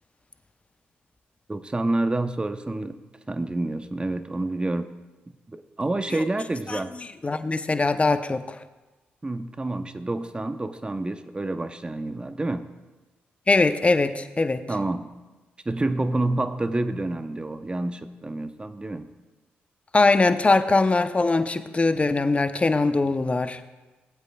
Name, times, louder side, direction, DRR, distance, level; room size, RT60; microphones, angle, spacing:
voice 1, 1.5-2.9 3.3-4.9 5.3-6.9 9.2-12.6 14.7-15.1 15.7-19.1, right 2 dB, 20° right, 10 dB, 0.7 m, -28 dB
voice 2, 7.2-8.6 13.5-14.6 19.9-23.6, left 3 dB, 30° left, 10 dB, 0.7 m, -21 dB
18.5 x 8.1 x 2.3 m, 1.1 s
supercardioid pair, 55°, 4 cm